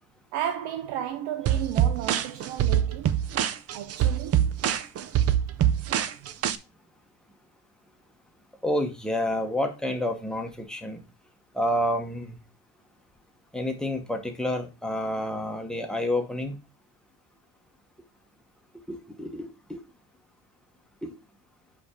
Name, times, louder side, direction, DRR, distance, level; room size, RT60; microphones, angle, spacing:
voice 1, 0.3-3.1 3.7-4.5 5.8-5.9 6.2-6.3, right 10 dB, 90° right, 0.8 m, -33 dB
sound 1, 1.5-6.6, right 10 dB, 40° right, 0.4 m, -24 dB
voice 2, 8.6-11.0 11.5-12.4 13.5-16.6 18.9-19.8 21.0-21.1, left 1 dB, ahead, 0.9 m, -29 dB
5.1 x 4.9 x 4.9 m
cardioid pair, 155°, 41 cm